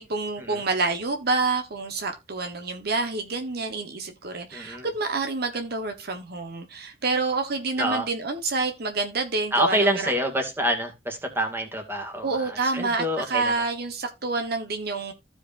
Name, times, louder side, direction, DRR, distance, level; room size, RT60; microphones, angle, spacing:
voice 1, 0.0-10.1 12.2-15.1, right 3 dB, 60° right, 1.1 m, -28 dB
voice 2, 4.5-4.9 7.8-8.1 9.5-13.5, equal, 15° right, 2.0 m, -27 dB
15.0 x 5.0 x 2.5 m
head